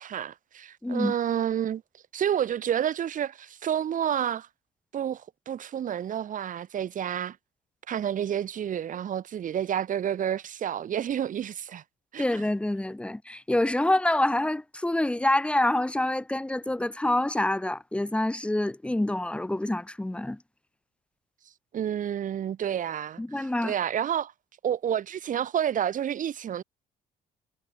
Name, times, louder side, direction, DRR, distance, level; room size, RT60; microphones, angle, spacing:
voice 1, 0.0-1.8 2.1-4.5 4.9-7.4 7.9-11.8 12.1-12.4 21.7-24.3 24.6-26.6, right 9 dB, 50° right, 3.6 m, -29 dB
voice 2, 0.8-1.1 12.2-20.4 23.2-23.7, left 1 dB, 5° left, 1.4 m, -26 dB
cardioid pair, 110°, 17 cm